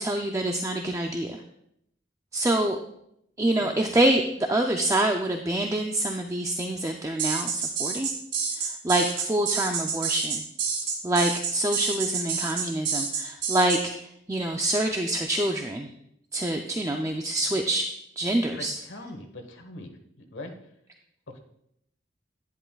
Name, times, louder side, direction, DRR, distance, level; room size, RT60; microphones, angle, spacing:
voice 1, 0.0-1.4 2.3-2.8 3.4-8.1 8.5-10.4 11.0-13.8 14.3-15.9 16.3-17.9 18.2-18.7, right 1 dB, 15° right, 3 dB, 0.4 m, -26 dB
sound 1, 7.2-13.8, right 5 dB, 70° right, 1.7 m, -29 dB
voice 2, 18.6-19.9 20.2-20.5 21.3-21.4, left 2 dB, 90° left, 5 dB, 1.3 m, -41 dB
11.0 x 10.0 x 2.3 m, 0.77 s
head